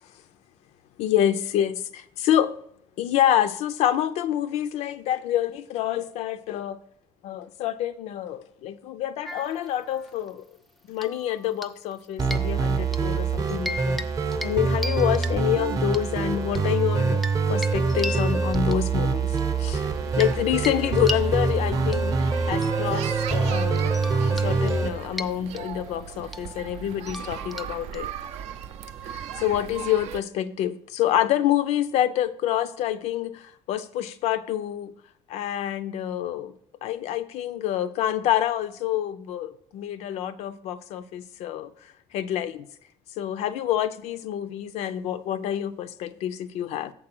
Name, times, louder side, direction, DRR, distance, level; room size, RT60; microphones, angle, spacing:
voice 1, 1.0-1.8 2.2-2.6 3.0-6.8 7.2-10.4 10.9-14.0 14.4-19.8 20.2-22.1 22.4-23.9 24.3-28.1 29.0-34.9 35.3-36.5 36.8-41.7 42.1-42.7 43.2-46.9, left 11 dB, 70° left, 0.4 m, -27 dB
sound 1, 9.2-10.3 11.0-11.9 12.2-13.1 13.5-14.1 14.3-14.6 14.8-16.0 16.5-20.4 20.6-28.3, left 1 dB, ahead, 0.3 m, -38 dB
sound 2, 12.2-24.9, right 4 dB, 30° right, 0.7 m, -25 dB
sound 3, 19.7-30.2, right 9 dB, 65° right, 0.4 m, -38 dB
7.6 x 3.8 x 6.0 m
cardioid pair, 135°, 12 cm